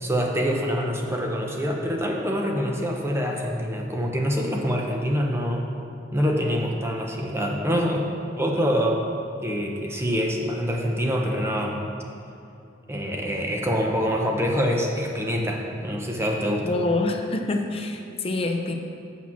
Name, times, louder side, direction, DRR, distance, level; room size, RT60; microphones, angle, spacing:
voice 1, 0.0-5.7 6.1-9.0 9.4-11.8 12.9-16.8, equal, 15° right, 0 dB, 0.7 m, -25 dB
voice 2, 16.6-18.8, left 2 dB, 30° left, 4 dB, 0.6 m, -26 dB
7.2 x 6.3 x 6.0 m, 2.6 s
head